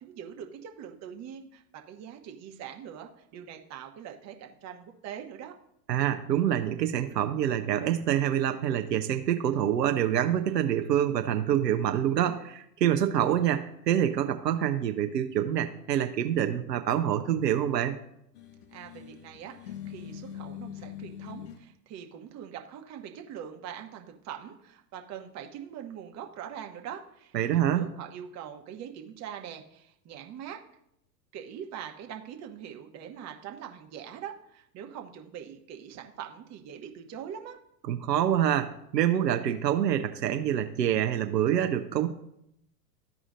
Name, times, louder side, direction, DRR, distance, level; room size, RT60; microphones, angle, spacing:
voice 1, 0.0-5.5 18.7-30.6 31.3-37.6, right 9 dB, 35° right, 3 dB, 1.0 m, -43 dB
voice 2, 5.9-17.9 27.3-27.9 37.9-42.1, right 10 dB, 80° right, 7 dB, 0.7 m, -26 dB
sound 1, 18.3-21.6, left 10 dB, 65° left, 1.1 m, -43 dB
14.0 x 4.9 x 2.5 m, 0.77 s
hypercardioid pair, 100°, 49 cm